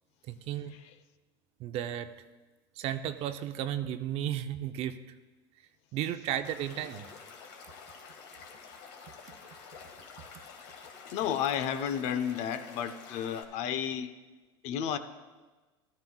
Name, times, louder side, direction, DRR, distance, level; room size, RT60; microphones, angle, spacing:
voice 1, 0.3-0.7 1.6-2.3 2.8-5.0 5.9-7.1, right 11 dB, 50° right, 9 dB, 0.7 m, -34 dB
Stream / Liquid, 6.4-13.4, left 5 dB, 70° left, 1.9 m, -49 dB
voice 2, 11.1-14.1 14.6-15.0, left 9 dB, 55° left, 10 dB, 0.8 m, -32 dB
15.0 x 12.5 x 2.4 m, 1.2 s
supercardioid pair, 110°, 13 cm